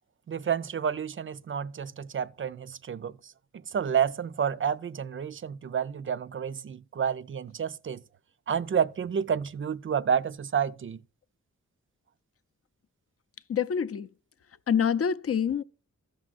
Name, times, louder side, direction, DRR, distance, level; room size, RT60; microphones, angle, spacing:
voice 1, 0.3-3.1 3.7-8.0 8.5-11.0, right 7 dB, 40° right, 0.4 m, -29 dB
voice 2, 13.5-14.1 14.7-15.6, left 7 dB, 50° left, 0.4 m, -26 dB
14.5 x 6.2 x 2.4 m
wide cardioid pair, 80°, 31 cm